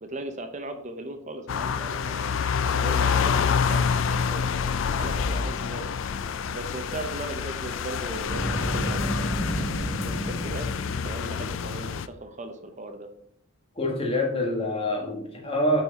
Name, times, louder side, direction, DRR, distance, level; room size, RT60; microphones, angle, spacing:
voice 1, 0.0-2.4 2.7-5.9 6.5-9.3 10.0-10.7 11.0-13.1, right 2 dB, 35° right, 7 dB, 0.7 m, -38 dB
sound 1, 1.5-12.1, left 6 dB, 60° left, 0.4 m, -27 dB
Boom, 8.3-11.3, equal, 90° left, 3.2 m, -30 dB
voice 2, 13.8-15.8, left 1 dB, 25° left, 0 dB, 1.5 m, -26 dB
8.7 x 4.7 x 4.1 m, 0.71 s
head